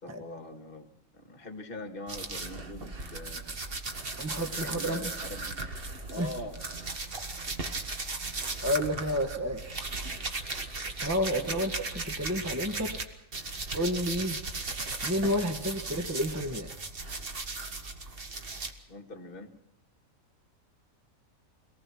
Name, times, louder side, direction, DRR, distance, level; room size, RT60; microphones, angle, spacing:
voice 1, 0.0-3.5 4.5-5.6 6.1-6.6 11.3-11.7 18.9-19.5, left 1 dB, 40° left, 5 dB, 2.1 m, -43 dB
sound 1, 2.1-13.0 13.3-18.7, right 3 dB, 40° right, 1.7 m, -37 dB
voice 2, 4.2-5.1 6.2-6.3 8.6-9.6 11.0-13.0 13.7-14.4 15.0-16.7, equal, 10° right, 5 dB, 1.4 m, -30 dB
25.0 x 18.5 x 6.1 m, 0.83 s
omnidirectional pair, 1.4 m